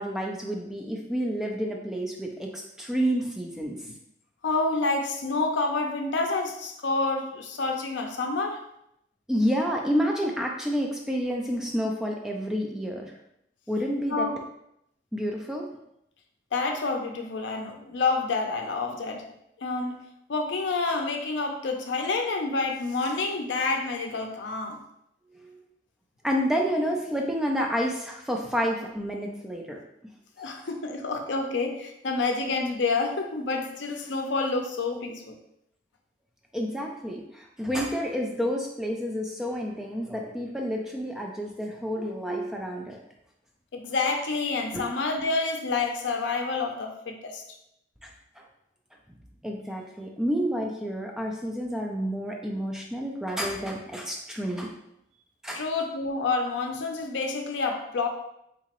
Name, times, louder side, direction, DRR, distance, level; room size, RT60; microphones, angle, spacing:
voice 1, 0.0-3.8 9.3-13.1 13.7-14.3 15.1-15.7 25.4-25.6 26.2-29.8 30.4-30.5 36.5-43.0 44.7-44.8 48.0-48.4 49.4-54.7 55.4-55.6, equal, 5° right, 0 dB, 0.3 m, -29 dB
voice 2, 4.4-8.6 14.1-14.4 16.5-19.2 19.6-19.9 20.3-24.8 30.4-35.4 43.7-47.4 55.5-58.1, left 3 dB, 75° left, 4 dB, 0.5 m, -28 dB
3.6 x 2.9 x 2.9 m, 0.79 s
head